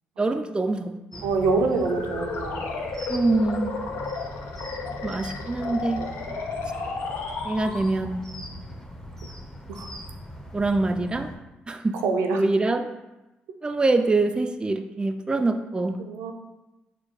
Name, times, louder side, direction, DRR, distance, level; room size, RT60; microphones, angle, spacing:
voice 1, 0.2-1.2 3.1-3.7 5.0-6.0 7.4-8.2 10.5-11.3 11.7-12.0 12.3-12.8 13.6-16.0, right 2 dB, 20° right, 7 dB, 0.3 m, -24 dB
sound 1, 1.1-11.4, equal, 10° left, 0.7 m, -40 dB
voice 2, 1.2-2.8 6.0-6.1 9.7-9.9 12.0-12.4 16.0-16.3, right 4 dB, 80° right, 3 dB, 0.5 m, -26 dB
sound 2, 1.7-8.2, left 4 dB, 75° left, 0.6 m, -33 dB
4.4 x 2.2 x 4.7 m, 1.0 s
supercardioid pair, 55°, 4 cm